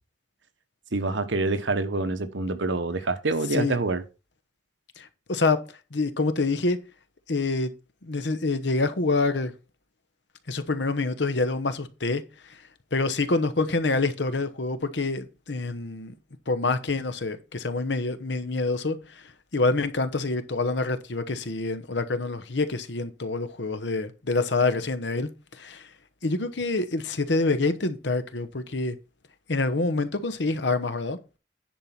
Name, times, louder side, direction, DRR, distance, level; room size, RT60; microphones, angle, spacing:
voice 1, 0.9-4.0, right 3 dB, 80° right, 1.1 m, -26 dB
voice 2, 5.0-5.6 5.9-6.8 7.3-7.7 8.0-9.5 10.5-12.2 12.5-12.6 12.9-16.1 16.5-25.9 26.2-29.0 29.5-31.2, left 3 dB, 70° left, 1.0 m, -26 dB
10.5 x 4.4 x 5.8 m
head